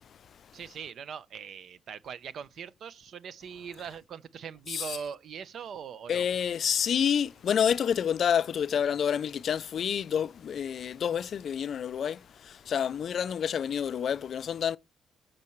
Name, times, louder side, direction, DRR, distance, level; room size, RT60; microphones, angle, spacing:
voice 1, 0.5-6.3, right 7 dB, 60° right, 0.7 m, -41 dB
voice 2, 6.1-14.8, left 8 dB, 60° left, 0.4 m, -28 dB
14.0 x 6.6 x 3.1 m
cardioid pair, 90°, 0 cm